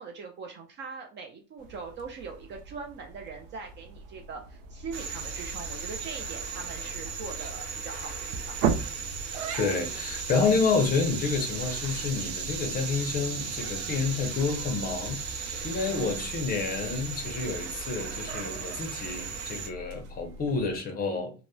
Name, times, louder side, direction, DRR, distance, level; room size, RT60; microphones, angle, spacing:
voice 1, 0.0-8.4, right 4 dB, 30° right, 0.4 m, -41 dB
sound 1, 1.6-20.8, right 5 dB, 85° right, 0.5 m, -39 dB
sound 2, 4.9-19.7, right 6 dB, 55° right, 0.7 m, -36 dB
voice 2, 9.6-21.3, left 4 dB, 25° left, 0.5 m, -29 dB
2.9 x 2.0 x 2.2 m
supercardioid pair, 115°, 38 cm